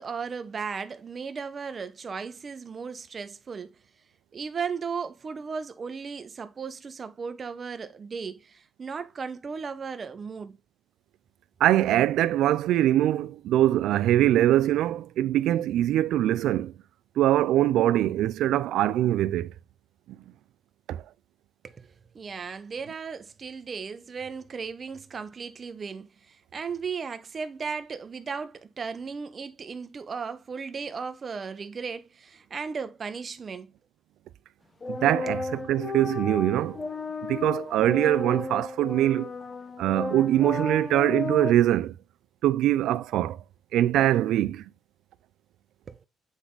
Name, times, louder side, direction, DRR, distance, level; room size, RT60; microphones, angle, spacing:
voice 1, 0.0-3.7 4.3-10.6 21.6-33.7 45.9-46.0, right 5 dB, 40° right, 0.9 m, -36 dB
voice 2, 11.6-16.7 17.2-19.5 20.1-20.2 20.9-21.0 34.9-36.8 37.2-39.3 39.8-41.9 42.4-43.4 43.7-44.6, right 13 dB, 85° right, 0.4 m, -23 dB
sound 1, 34.8-41.5, left 3 dB, 30° left, 1.0 m, -34 dB
8.2 x 3.6 x 3.9 m
cardioid pair, 90°, 0 cm